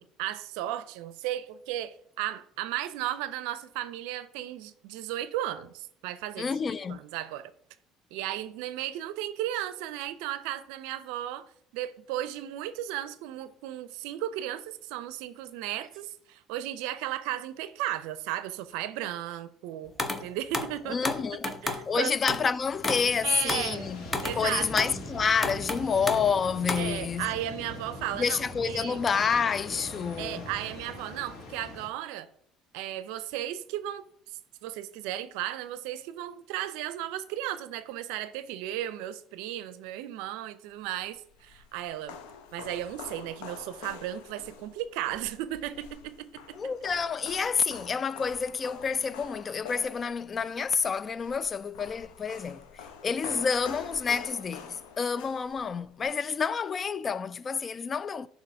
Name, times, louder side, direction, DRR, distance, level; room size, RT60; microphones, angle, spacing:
voice 1, 0.0-6.5 6.9-7.5 8.1-11.4 11.7-19.9 20.2-21.0 21.6-22.2 23.2-23.9 24.2-24.9 26.8-28.4 28.6-29.0 30.2-32.3 32.7-34.0 34.6-42.2 42.5-46.1, right 13 dB, 80° right, 0.4 m, -35 dB
voice 2, 6.4-7.0 20.9-21.5 21.9-24.1 24.4-27.3 28.1-30.5 46.6-58.3, left 6 dB, 35° left, 0.3 m, -29 dB
sound 1, 20.0-20.2 20.5-21.9 22.3-22.5 22.8-25.0 25.4-26.4 26.7-27.0, left 2 dB, 20° left, 0.8 m, -32 dB
sound 2, 22.6-31.9, left 1 dB, 65° left, 1.5 m, -42 dB
sound 3, 41.0-56.1, left 6 dB, 85° left, 0.7 m, -46 dB
7.5 x 2.9 x 5.6 m
supercardioid pair, 90°, 0 cm